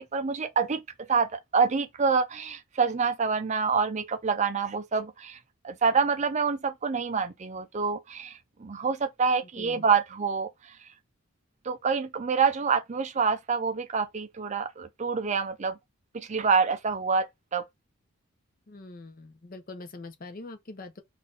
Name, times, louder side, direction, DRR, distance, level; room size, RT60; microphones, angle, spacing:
voice 1, 0.0-5.4 5.6-10.9 11.6-15.8 16.1-17.7, right 5 dB, 30° right, 0.4 m, -27 dB
voice 2, 18.7-21.0, left 2 dB, 40° left, 0.6 m, -43 dB
3.9 x 2.5 x 3.7 m
head